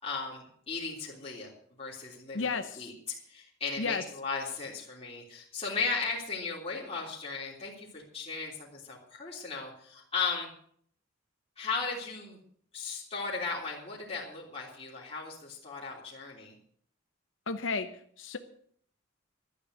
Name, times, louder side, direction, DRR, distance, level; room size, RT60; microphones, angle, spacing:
voice 1, 0.0-1.5 1.8-2.5 2.8-10.5 11.6-12.4 12.7-16.5, left 4 dB, 30° left, -5 dB, 3.3 m, -36 dB
voice 2, 2.3-2.9 3.8-4.0 17.5-17.9 18.2-18.4, left 4 dB, 70° left, 8 dB, 0.9 m, -32 dB
12.5 x 10.0 x 8.0 m, 0.62 s
head